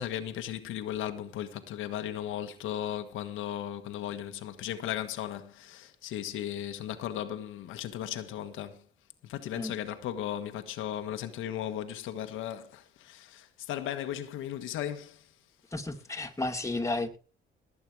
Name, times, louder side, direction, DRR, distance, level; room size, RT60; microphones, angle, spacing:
voice 1, 0.0-8.8 9.2-15.3, left 11 dB, 90° left, 1.5 m, -36 dB
voice 2, 15.7-17.2, left 2 dB, 15° left, 2.5 m, -32 dB
18.0 x 8.8 x 4.8 m
cardioid pair, 90°, 20 cm